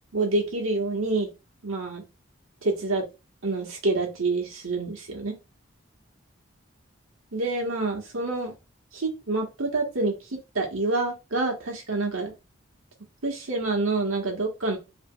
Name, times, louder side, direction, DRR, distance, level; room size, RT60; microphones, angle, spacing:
voice 1, 0.1-1.3 1.6-2.0 2.6-3.0 3.4-5.4 7.3-8.5 8.9-12.3 13.2-14.8, right 2 dB, 80° right, 1 dB, 1.5 m, -27 dB
6.0 x 3.3 x 2.3 m, 0.27 s
head